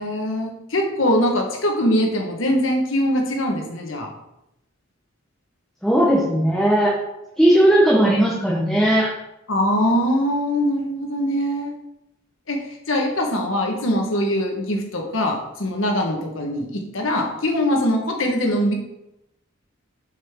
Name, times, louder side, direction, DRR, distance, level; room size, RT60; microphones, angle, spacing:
voice 1, 0.0-4.1 9.5-11.7 12.5-18.7, equal, 90° left, 1 dB, 1.3 m, -22 dB
voice 2, 5.8-6.9 7.4-9.1, right 1 dB, ahead, -6 dB, 1.0 m, -17 dB
6.8 x 5.2 x 3.6 m, 0.87 s
head